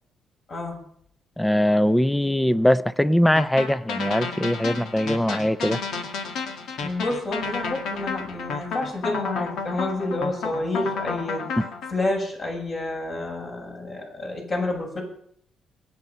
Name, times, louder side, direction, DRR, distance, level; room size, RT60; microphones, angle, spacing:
voice 1, 1.4-5.8 11.6-11.7, equal, 5° left, 0.5 m, -21 dB
sound 1, 3.4-11.9, left 5 dB, 80° left, 1.9 m, -31 dB
voice 2, 6.8-11.4 11.9-15.0, left 2 dB, 45° left, 7.3 m, -29 dB
22.5 x 9.1 x 5.6 m
cardioid pair, 90°, 0 cm